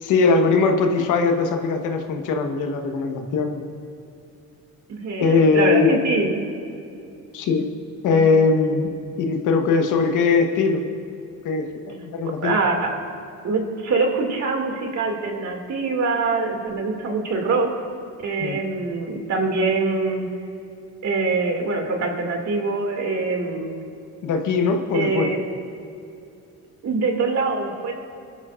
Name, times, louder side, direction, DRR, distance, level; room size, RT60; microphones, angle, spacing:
voice 1, 0.0-3.7 5.2-5.9 7.3-7.7 8.0-8.9 9.2-10.8 11.4-12.5 18.4-18.6 24.2-25.3, left 4 dB, 90° left, 4 dB, 1.3 m, -20 dB
voice 2, 4.9-6.4 8.1-8.2 12.2-12.9 13.4-17.7 18.2-20.3 21.0-23.8 24.9-25.4 26.8-27.9, right 3 dB, 60° right, 2 dB, 2.4 m, -24 dB
23.0 x 12.5 x 2.5 m, 2.5 s
cardioid pair, 90°, 30 cm